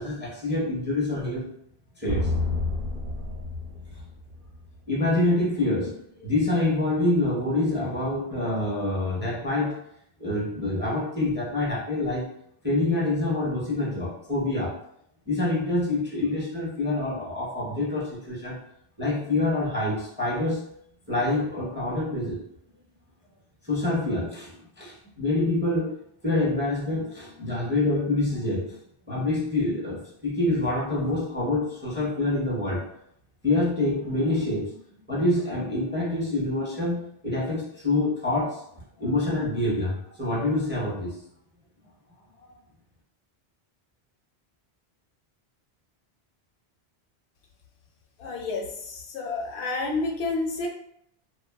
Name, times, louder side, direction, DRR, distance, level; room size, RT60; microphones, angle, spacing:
voice 1, 0.0-1.4 2.0-2.3 4.9-9.8 10.2-12.3 12.6-14.8 15.3-18.6 19.0-20.6 21.1-22.4 23.6-26.0 26.2-28.7 29.1-32.8 33.4-34.7 35.1-38.6 39.0-41.2, left 2 dB, 15° right, -6 dB, 0.5 m, -26 dB
sound 1, 2.1-4.8, left 2 dB, 60° right, 0.7 m, -29 dB
voice 2, 48.2-50.7, left 3 dB, 85° left, 1 dB, 0.9 m, -30 dB
2.8 x 2.2 x 2.2 m, 0.74 s
omnidirectional pair, 1.1 m